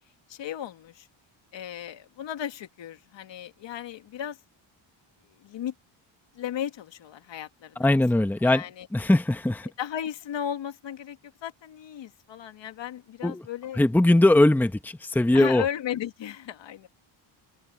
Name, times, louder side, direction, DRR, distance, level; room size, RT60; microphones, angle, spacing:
voice 1, 0.3-1.1 1.5-4.4 5.2-5.7 6.3-8.0 8.4-8.9 9.8-13.8 15.3-16.9, left 10 dB, 60° left, 2.0 m, -35 dB
voice 2, 7.8-8.6 8.9-9.7 13.2-13.4 13.8-15.6, left 1 dB, 5° left, 1.0 m, -20 dB
cardioid pair, 140°, 49 cm